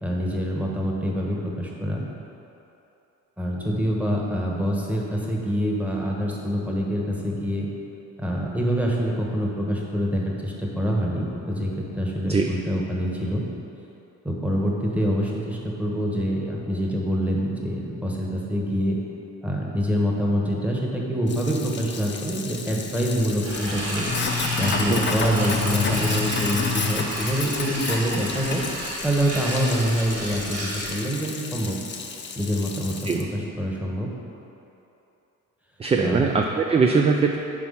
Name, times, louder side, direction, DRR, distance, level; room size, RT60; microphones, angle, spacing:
voice 1, 0.0-2.0 3.4-7.7 8.2-13.4 14.2-19.0 19.4-24.1 24.5-28.6 29.0-31.8 32.3-34.1 36.0-36.3, equal, 5° right, -2 dB, 1.2 m, -25 dB
Sink (filling or washing), 21.3-33.2, left 5 dB, 40° left, 0.7 m, -31 dB
sound 1, 23.4-31.0, right 1 dB, 55° right, 1.3 m, -32 dB
voice 2, 35.8-37.4, right 4 dB, 20° right, 2 dB, 0.3 m, -21 dB
6.1 x 4.4 x 5.6 m, 2.9 s
cardioid pair, 90°, 30 cm